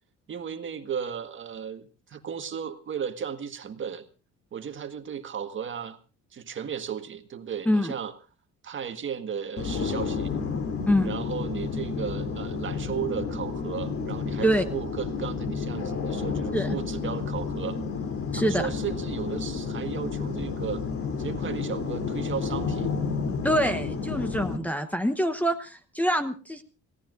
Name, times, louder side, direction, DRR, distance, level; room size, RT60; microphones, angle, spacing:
voice 1, 0.3-4.0 4.5-6.0 6.3-8.1 8.6-10.4 11.0-17.8 18.3-20.8 21.2-22.9, right 7 dB, 40° right, 8 dB, 1.5 m, -35 dB
sound 1, 9.6-24.6, left 5 dB, 50° left, 3.1 m, -31 dB
voice 2, 18.3-18.7 23.4-26.6, equal, 5° left, 4 dB, 1.0 m, -25 dB
28.0 x 17.5 x 2.6 m, 0.34 s
cardioid pair, 155°, 29 cm